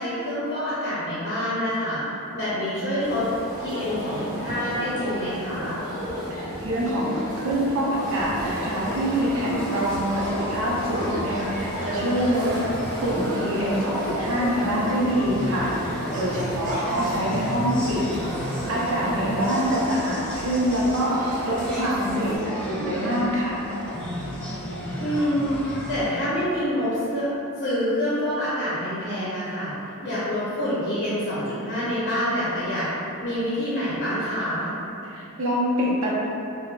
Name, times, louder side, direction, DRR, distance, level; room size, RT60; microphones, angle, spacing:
voice 1, 0.0-2.0 2.3-3.2 3.6-5.8 16.9-17.1 25.0-27.3 27.6-29.7 30.0-32.9 33.2-34.7, equal, 50° left, -11 dB, 0.7 m, -27 dB
sound 1, 3.0-22.4, equal, 40° right, 1.1 m, -33 dB
voice 2, 6.3-12.5 13.0-18.0 18.7-23.6 35.0-36.1, equal, 65° right, -6 dB, 0.6 m, -25 dB
sound 2, 8.0-26.1, equal, 5° left, 0.4 m, -34 dB
3.9 x 2.1 x 2.3 m, 2.8 s
head